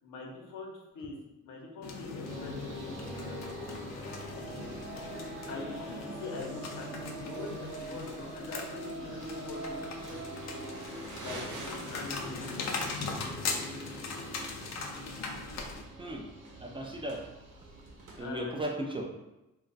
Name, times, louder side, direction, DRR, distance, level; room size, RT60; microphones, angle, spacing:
voice 1, 0.0-3.7 5.5-10.3 11.2-12.4 18.2-18.9, left 3 dB, 90° left, -1 dB, 0.8 m, -44 dB
sound 1, 1.8-15.8, left 4 dB, 60° left, 0.5 m, -40 dB
sound 2, 2.3-18.3, right 1 dB, 40° right, 0.7 m, -43 dB
Crumpling crinkling, 6.7-18.2, right 2 dB, 75° right, 0.8 m, -50 dB
voice 2, 16.0-16.3 16.5-17.3 18.1-19.0, right 1 dB, 20° right, 0 dB, 0.3 m, -37 dB
2.3 x 2.2 x 3.9 m, 0.96 s
cardioid pair, 130°, 31 cm